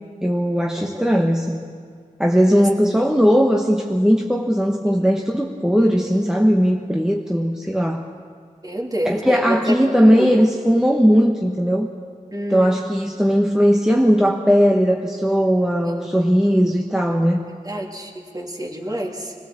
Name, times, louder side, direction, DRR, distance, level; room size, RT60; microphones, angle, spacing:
voice 1, 0.2-1.7 2.2-8.0 9.0-11.9 12.5-17.4, equal, 5° right, 1 dB, 1.2 m, -18 dB
voice 2, 8.6-9.7 10.1-10.4 12.3-12.8 17.5-19.3, equal, 25° right, 0 dB, 2.8 m, -27 dB
21.5 x 19.0 x 7.4 m, 2.1 s
wide cardioid pair, 90°, 14 cm